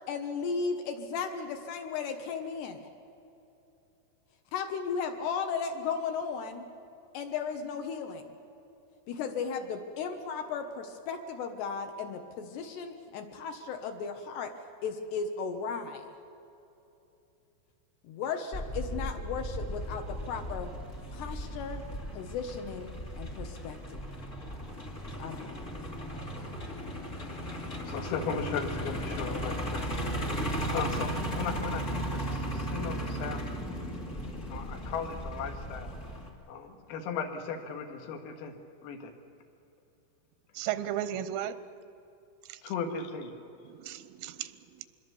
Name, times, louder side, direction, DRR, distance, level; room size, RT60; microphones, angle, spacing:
voice 1, 0.1-2.9 4.5-6.7 7.1-8.3 9.1-14.5 14.8-16.1 18.0-20.7 21.1-21.8 22.1-22.9 23.2-24.1 25.2-25.6, left 5 dB, 70° left, 6 dB, 2.8 m, -35 dB
Truck, 18.5-36.3, right 1 dB, 40° left, 1.1 m, -36 dB
voice 2, 27.3-30.2 30.7-33.4 34.5-35.9 36.5-38.5 38.8-39.1 42.6-43.3, left 5 dB, 85° left, 4 dB, 4.6 m, -37 dB
voice 3, 40.6-41.6 42.5-42.6 43.7-44.9, right 11 dB, 90° right, 13 dB, 3.5 m, -35 dB
25.5 x 21.5 x 7.1 m, 2.8 s
omnidirectional pair, 5.9 m